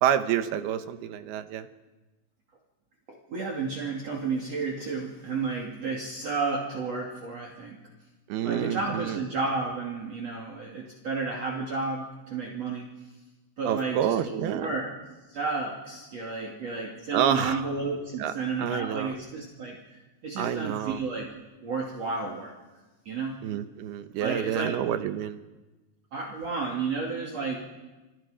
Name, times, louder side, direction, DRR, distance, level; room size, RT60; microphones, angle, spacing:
voice 1, 0.0-1.7 8.3-9.2 13.6-14.7 17.1-17.6 18.2-18.3 18.6-19.1 20.4-21.0 23.4-25.4, right 10 dB, 75° right, 9 dB, 3.1 m, -28 dB
voice 2, 3.1-7.8 8.4-12.9 13.6-14.9 15.3-19.8 20.2-21.3 21.6-22.5 23.0-23.4 24.2-24.7 26.1-27.6, right 4 dB, 45° right, 0 dB, 3.3 m, -32 dB
29.0 x 28.0 x 5.1 m, 1.1 s
omnidirectional pair, 4.6 m